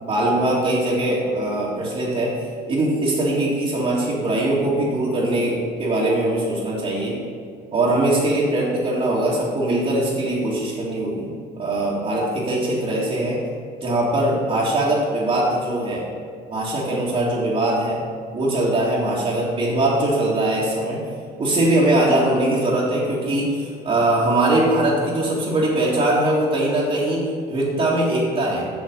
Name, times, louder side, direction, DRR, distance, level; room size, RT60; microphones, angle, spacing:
voice 1, 0.0-7.2 7.7-13.4 13.8-16.1 16.5-18.0 18.3-21.0 21.4-28.7, right 1 dB, 35° right, -8 dB, 2.1 m, -21 dB
7.5 x 6.8 x 5.3 m, 2.1 s
cardioid pair, 110°, 17 cm